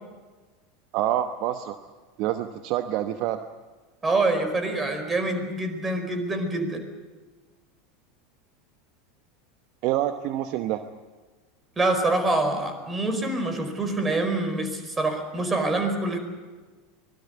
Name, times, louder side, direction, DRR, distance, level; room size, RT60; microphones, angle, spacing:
voice 1, 0.9-1.8 2.2-3.4 9.8-10.8, right 12 dB, 50° right, 9 dB, 1.0 m, -27 dB
voice 2, 4.0-6.8 11.8-16.2, right 2 dB, 20° right, 8 dB, 4.8 m, -25 dB
24.5 x 20.0 x 8.1 m, 1.3 s
figure-of-eight pair, 80°, 0 cm